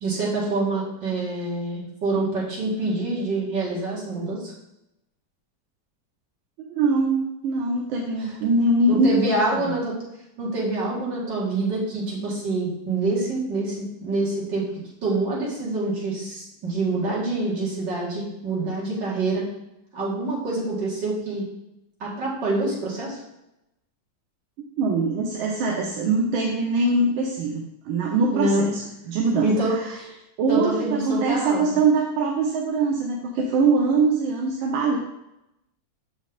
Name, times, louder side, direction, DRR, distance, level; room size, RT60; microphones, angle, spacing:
voice 1, 0.0-4.5 8.9-9.9 10.4-14.6 15.0-19.5 19.9-21.5 22.0-23.2 28.3-28.7 29.4-30.2 30.5-31.6, right 2 dB, 60° right, -6 dB, 2.6 m, -26 dB
voice 2, 6.7-9.7 24.8-29.9 30.4-35.0, right 3 dB, 80° right, 1 dB, 1.5 m, -23 dB
6.6 x 5.3 x 3.7 m, 0.88 s
omnidirectional pair, 2.2 m